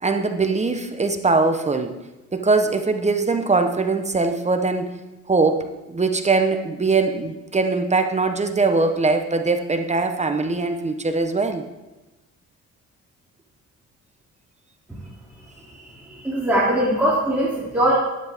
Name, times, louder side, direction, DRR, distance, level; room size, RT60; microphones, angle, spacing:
voice 1, 0.0-2.0 2.3-5.0 5.3-11.6, right 3 dB, 20° right, 6 dB, 0.9 m, -21 dB
voice 2, 16.0-17.9, right 1 dB, 5° right, -8 dB, 2.8 m, -21 dB
11.5 x 10.0 x 3.6 m, 1.1 s
cardioid pair, 90°, 30 cm